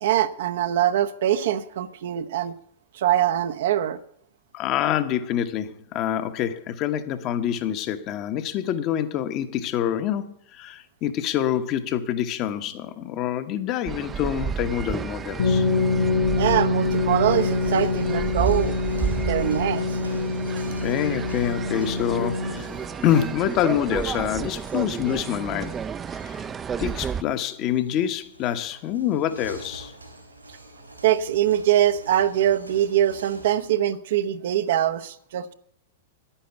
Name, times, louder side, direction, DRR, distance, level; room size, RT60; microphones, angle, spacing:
voice 1, 0.0-2.5 2.9-4.0 16.4-18.8 19.2-20.0 31.0-35.5, right 11 dB, 60° right, 0.8 m, -23 dB
voice 2, 4.5-15.7 20.8-22.7 23.0-25.8 26.1-26.4 26.8-29.9, left 10 dB, 40° left, 1.1 m, -26 dB
sound 1, 13.9-27.2, right 7 dB, 20° right, 0.5 m, -32 dB
sound 2, 15.4-22.9, left 4 dB, 70° left, 4.0 m, -25 dB
sound 3, 17.3-33.7, right 1 dB, 90° right, 3.6 m, -46 dB
10.5 x 10.0 x 7.0 m
figure-of-eight pair, 100°, 0 cm